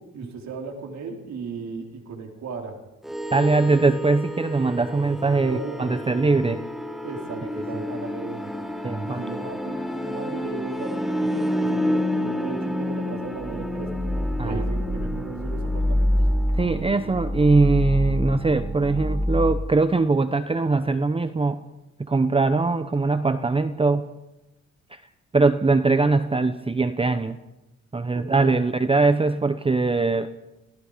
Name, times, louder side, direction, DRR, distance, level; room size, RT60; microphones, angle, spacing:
voice 1, 0.1-2.8 5.4-6.0 7.0-8.5 9.0-14.1 14.4-16.1 28.1-28.5, right 4 dB, 65° right, 2 dB, 4.4 m, -36 dB
sound 1, 3.0-19.6, left 1 dB, ahead, 2.0 m, -27 dB
voice 2, 3.3-6.6 7.4-7.9 8.8-9.2 14.4-14.6 16.5-21.6 22.0-24.1 24.9-25.0 25.3-27.4 27.9-30.3, right 3 dB, 20° right, 11 dB, 0.9 m, -21 dB
29.5 x 18.5 x 5.2 m, 0.97 s
cardioid pair, 90°, 30 cm